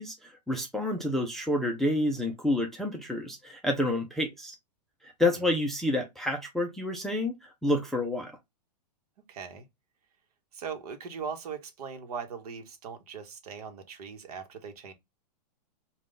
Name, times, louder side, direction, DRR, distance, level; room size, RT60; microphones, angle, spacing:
voice 1, 0.0-4.5 5.0-8.3, left 1 dB, ahead, 0.4 m, -29 dB
voice 2, 9.3-9.7 10.5-14.9, right 6 dB, 65° right, 1.0 m, -40 dB
3.6 x 2.3 x 3.7 m
hypercardioid pair, 140°, 21 cm